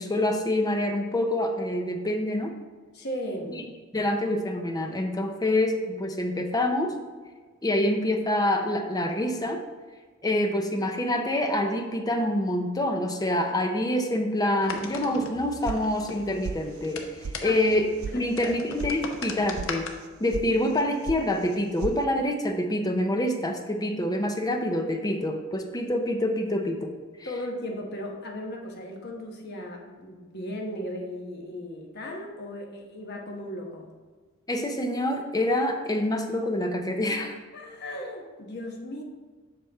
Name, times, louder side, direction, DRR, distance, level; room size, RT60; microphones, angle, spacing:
voice 1, 0.0-2.6 3.5-3.6 3.9-6.9 7.6-9.6 10.2-19.9 20.2-26.9 34.5-37.4, left 1 dB, 20° left, 5 dB, 0.6 m, -26 dB
voice 2, 2.9-3.6 17.4-17.6 18.1-18.6 27.2-33.9 37.5-39.0, left 1 dB, 50° left, 0 dB, 1.2 m, -36 dB
sound 1, 14.6-19.9, left 4 dB, 70° left, 0.8 m, -40 dB
sound 2, 15.6-16.2 16.4-17.0 17.2-17.3 17.7-18.1 18.4-18.9 19.2-19.7 20.0-20.5 20.7-21.2 21.5-22.0, right 5 dB, 90° right, 0.4 m, -35 dB
7.7 x 5.8 x 3.5 m, 1.4 s
head